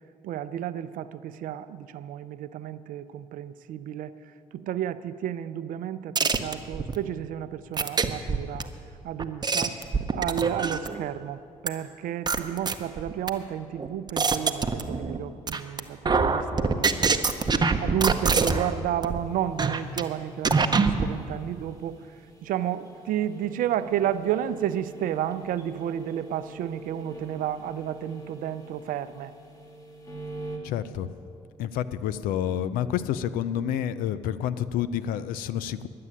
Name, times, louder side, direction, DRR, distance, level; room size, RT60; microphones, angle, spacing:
voice 1, 0.2-4.2 4.5-8.7 9.0-9.8 10.1-17.2 17.8-22.0 22.4-29.3, right 10 dB, 75° right, 14 dB, 0.5 m, -31 dB
sound 1, 6.2-6.9 7.8-8.6 9.2-11.0 11.7-11.8 12.3-13.3 13.8-15.2 15.5-15.8 16.1-18.7 19.0-19.2 19.6-20.0 20.4-21.1, right 4 dB, 30° right, 0.8 m, -24 dB
sound 2, 19.1-30.6, right 1 dB, 25° left, 2.4 m, -45 dB
voice 2, 30.6-31.1 31.6-35.9, left 10 dB, 85° left, 15 dB, 0.5 m, -29 dB
11.0 x 7.7 x 9.7 m, 2.5 s
supercardioid pair, 65°, 14 cm